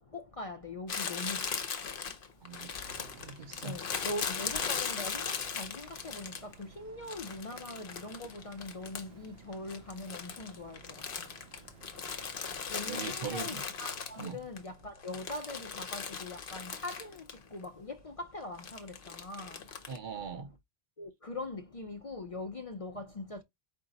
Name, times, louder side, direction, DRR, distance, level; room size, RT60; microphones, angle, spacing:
voice 1, 0.1-1.4 3.6-6.3 6.8-10.8 12.7-17.2 17.5-19.6 21.0-23.4, left 2 dB, 45° left, 0.5 m, -42 dB
Crumpling crinkling, 0.9-6.6 7.1-9.3 9.5-14.6 15.0-17.4 17.6-17.7 18.6-20.0, left 6 dB, 60° left, 1.0 m, -38 dB
sound 1, 2.7-16.7, right 5 dB, 80° right, 1.0 m, -57 dB
voice 2, 3.2-3.8 12.9-13.6 14.2-14.4 19.9-20.5, right 6 dB, 55° right, 0.7 m, -40 dB
4.8 x 2.6 x 3.9 m
omnidirectional pair, 1.1 m